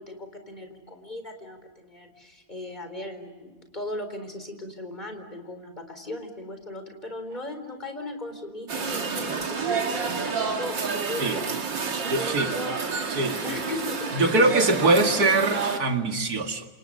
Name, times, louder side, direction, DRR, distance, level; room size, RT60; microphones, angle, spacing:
voice 1, 0.0-11.4 12.0-12.8 13.4-14.4, left 2 dB, 25° left, 7 dB, 4.2 m, -38 dB
sound 1, 8.7-15.8, right 5 dB, 75° right, 2.8 m, -29 dB
voice 2, 12.0-12.5 13.1-13.4 14.1-16.7, right 2 dB, 55° right, 5 dB, 2.5 m, -22 dB
28.5 x 27.5 x 6.6 m, 1.2 s
omnidirectional pair, 2.0 m